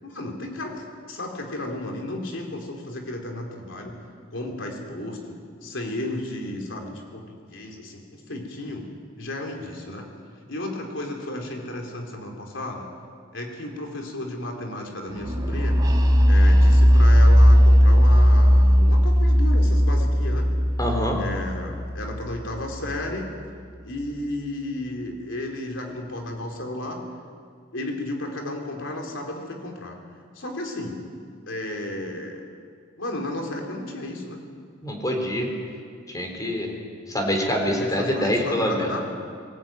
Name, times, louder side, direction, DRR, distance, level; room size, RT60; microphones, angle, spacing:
voice 1, 0.0-3.9 4.3-8.9 9.2-10.1 10.5-12.8 13.3-15.8 16.3-20.5 21.2-23.3 23.8-27.0 27.7-30.0 30.3-31.0 31.5-32.4 33.0-34.4 37.7-39.0, left 1 dB, 70° left, 1 dB, 4.1 m, -33 dB
sound 1, 15.2-22.9, equal, 20° right, 2.2 m, -17 dB
voice 2, 20.8-21.2 34.8-35.5 36.1-36.7 37.1-39.0, equal, 20° left, 2 dB, 4.1 m, -25 dB
21.0 x 18.5 x 9.3 m, 2.2 s
head